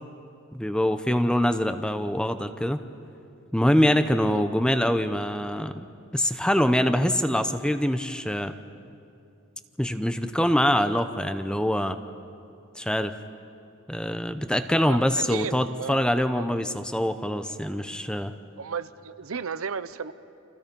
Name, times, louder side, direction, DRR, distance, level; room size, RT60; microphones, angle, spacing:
voice 1, 0.5-2.8 3.5-5.9 6.1-8.6 9.8-12.0 12.8-13.1 13.9-18.3, equal, 5° left, 9 dB, 0.7 m, -24 dB
voice 2, 14.8-16.0 16.4-16.5 18.6-20.1, right 6 dB, 80° right, 13 dB, 0.7 m, -34 dB
29.0 x 26.5 x 5.4 m, 2.6 s
head